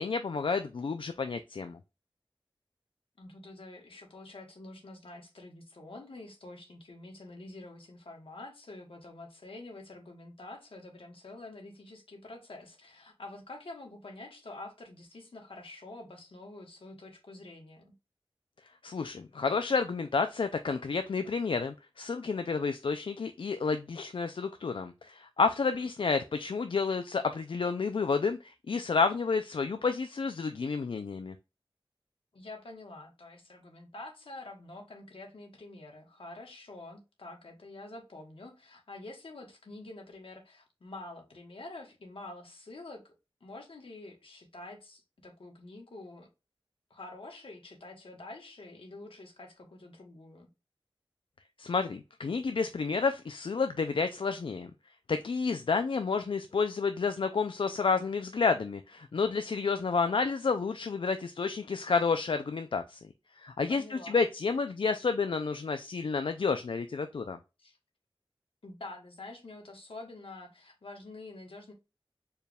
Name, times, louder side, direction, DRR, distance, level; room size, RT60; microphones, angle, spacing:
voice 1, 0.0-1.8 18.8-31.3 51.6-54.7 55.1-63.0 63.4-67.4, left 4 dB, 70° left, 0.4 m, -30 dB
voice 2, 3.2-18.0 25.7-25.9 32.3-43.1 43.4-46.3 46.9-50.5 59.6-59.9 63.7-64.2 67.6-67.8 68.6-71.7, left 2 dB, 85° left, 1.2 m, -47 dB
4.5 x 2.3 x 3.3 m
wide cardioid pair, 65°, 9 cm